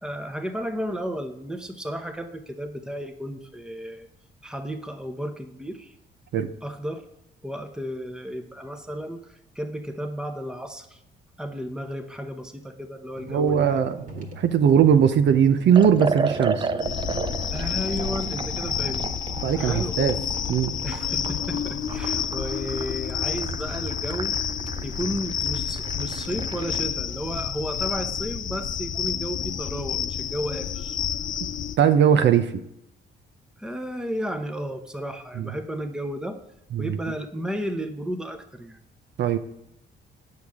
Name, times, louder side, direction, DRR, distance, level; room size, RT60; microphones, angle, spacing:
voice 1, 0.0-4.1 4.4-5.9 6.6-7.0 7.4-11.0 11.4-13.8 17.5-19.1 19.6-20.0 20.8-24.4 24.8-31.0 33.6-36.4 36.8-38.8, equal, 5° right, 6 dB, 0.9 m, -33 dB
sound 1, 13.2-20.0, equal, 45° right, 1.7 m, -41 dB
voice 2, 13.3-16.7 19.4-20.2 20.5-20.7 31.8-32.5 35.4-35.5 36.7-37.0 39.2-39.4, right 8 dB, 65° right, 7 dB, 0.6 m, -20 dB
Liquid, 15.7-26.9, right 4 dB, 25° right, 0.4 m, -33 dB
sound 2, 16.8-31.8, left 8 dB, 40° left, 0.4 m, -30 dB
8.3 x 6.5 x 3.6 m, 0.82 s
cardioid pair, 90°, 20 cm